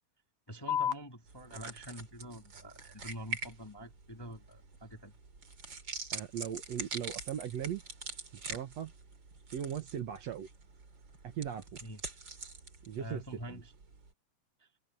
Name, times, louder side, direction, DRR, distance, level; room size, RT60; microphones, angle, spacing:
voice 1, 0.5-5.1 11.8-12.0 13.0-13.7 14.6-14.7, equal, 10° left, 1.4 m, -46 dB
sound 1, 0.7-7.7, left 8 dB, 75° left, 2.5 m, -43 dB
sound 2, 1.3-14.1, right 4 dB, 35° right, 3.7 m, -45 dB
voice 2, 6.1-7.8 8.5-8.9 9.5-10.5 11.2-11.8 12.9-13.6, right 9 dB, 60° right, 2.2 m, -38 dB
omnidirectional pair, 3.7 m